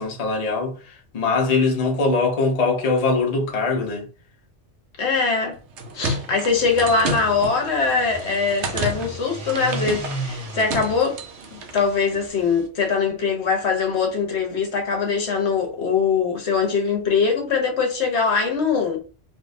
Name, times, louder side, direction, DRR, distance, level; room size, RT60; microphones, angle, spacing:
voice 1, 0.0-4.1, left 3 dB, 40° left, 0.7 m, -22 dB
voice 2, 5.0-5.6 5.9-11.2 11.5-19.0, left 5 dB, 70° left, 1.1 m, -22 dB
sound 1, 5.5-11.9, right 2 dB, 75° right, 0.9 m, -31 dB
sound 2, 6.4-12.7, right 2 dB, 40° right, 0.7 m, -36 dB
3.5 x 2.5 x 2.6 m
omnidirectional pair, 1.2 m